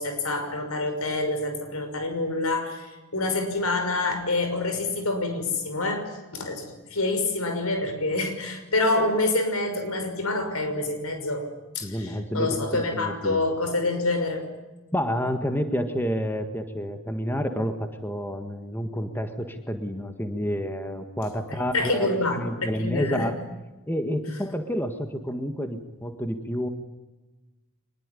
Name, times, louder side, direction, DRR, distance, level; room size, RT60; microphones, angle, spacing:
voice 1, 0.0-11.5 11.7-14.5 21.5-23.3, left 2 dB, 80° left, 7 dB, 6.0 m, -27 dB
voice 2, 11.8-13.4 14.9-23.3 23.9-26.7, equal, 10° left, 6 dB, 1.6 m, -29 dB
24.5 x 21.5 x 9.9 m, 1.1 s
head